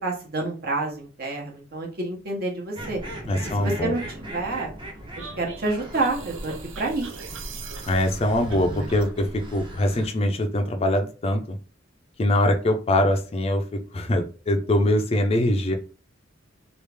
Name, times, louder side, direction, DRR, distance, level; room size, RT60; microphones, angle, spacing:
voice 1, 0.0-3.0 3.6-4.7 5.4-7.4, right 2 dB, 55° right, 0 dB, 1.0 m, -28 dB
sound 1, 2.7-10.1, right 1 dB, 25° right, 0.7 m, -39 dB
voice 2, 3.3-3.9 7.9-11.6 12.2-13.6 13.9-15.8, left 1 dB, 30° left, 5 dB, 0.4 m, -23 dB
sound 2, 5.2-9.1, right 4 dB, 85° right, 0.5 m, -39 dB
3.1 x 2.4 x 3.3 m, 0.36 s
head